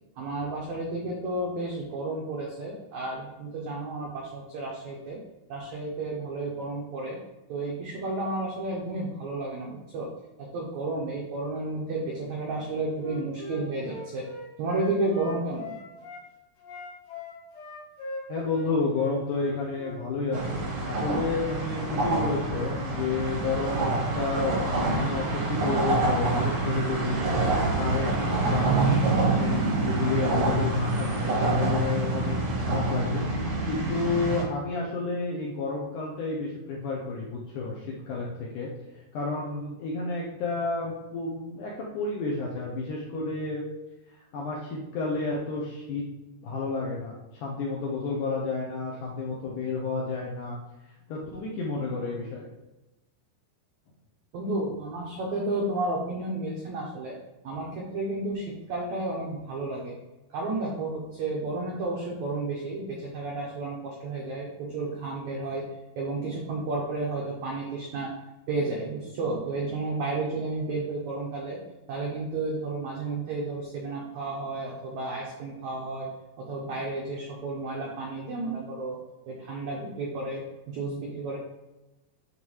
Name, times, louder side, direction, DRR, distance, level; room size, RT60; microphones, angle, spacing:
voice 1, 0.2-5.2 5.5-7.2 7.5-10.1 10.4-14.3 14.6-15.8 54.3-57.2 57.4-59.9 60.3-65.7 66.0-68.1 68.5-71.6 71.9-76.1 76.4-79.0 79.3-81.4, right 2 dB, 85° right, -2 dB, 1.6 m, -32 dB
Wind instrument woodwind instrument, 13.0-16.2 16.6-20.0, left 2 dB, 60° left, 3.1 m, -40 dB
voice 2, 18.3-43.6 44.1-46.1 46.4-50.6 50.8-52.5, left 3 dB, 80° left, -3 dB, 1.9 m, -31 dB
sound 1, 20.3-34.4, right 2 dB, 70° right, 1.3 m, -26 dB
10.5 x 3.7 x 3.1 m, 1.0 s
omnidirectional pair, 4.7 m